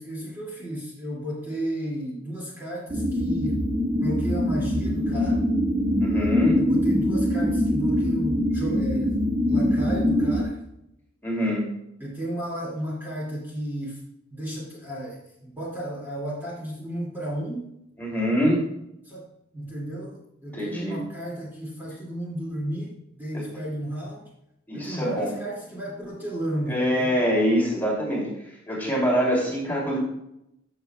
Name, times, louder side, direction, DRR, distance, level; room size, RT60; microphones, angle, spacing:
voice 1, 0.0-3.6 3.9-5.5 6.6-9.2 9.5-10.7 12.0-14.0 14.3-17.7 19.0-19.2 19.5-24.3 24.7-27.1, right 1 dB, 10° right, -6 dB, 2.4 m, -33 dB
sound 1, 2.9-10.4, left 1 dB, 30° right, 1.8 m, -23 dB
voice 2, 6.0-6.6 11.2-11.7 18.0-18.6 20.5-21.0 24.7-25.3 26.7-28.3 28.7-30.0, equal, 10° left, -4 dB, 2.7 m, -24 dB
13.5 x 7.0 x 2.3 m, 0.82 s
head